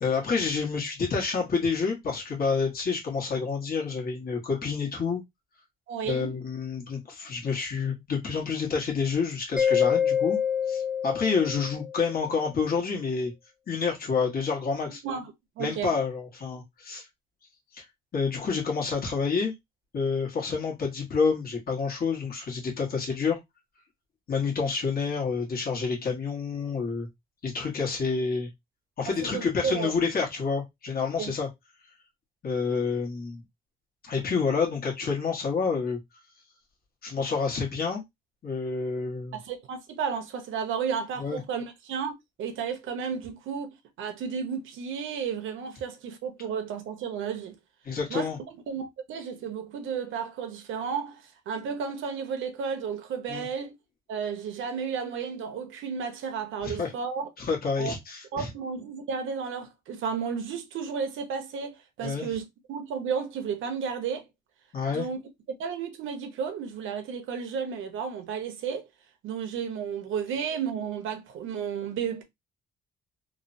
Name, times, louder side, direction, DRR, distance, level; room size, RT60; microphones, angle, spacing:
voice 1, 0.0-5.2 6.0-10.4 10.7-13.3 13.7-15.0 15.6-17.1 17.7-17.8 18.1-19.5 19.9-23.4 24.3-27.1 27.4-28.5 29.0-31.5 32.4-33.4 34.0-36.0 37.0-38.0 38.4-39.4 41.2-41.4 47.8-48.4 53.3-53.5 56.6-56.9 57.4-58.5 62.0-62.3 64.7-65.1, left 5 dB, 50° left, 1.2 m, -28 dB
voice 2, 5.9-6.3 15.0-15.9 29.3-29.9 31.2-31.3 39.3-42.1 42.4-47.6 48.1-53.7 54.1-57.3 57.8-57.9 58.3-64.2 64.9-65.3 65.6-68.9 69.2-72.2, right 6 dB, 80° right, 0.8 m, -33 dB
Mallet percussion, 9.6-12.1, left 8 dB, 5° right, 0.5 m, -26 dB
3.1 x 2.0 x 2.6 m
cardioid pair, 90°, 20 cm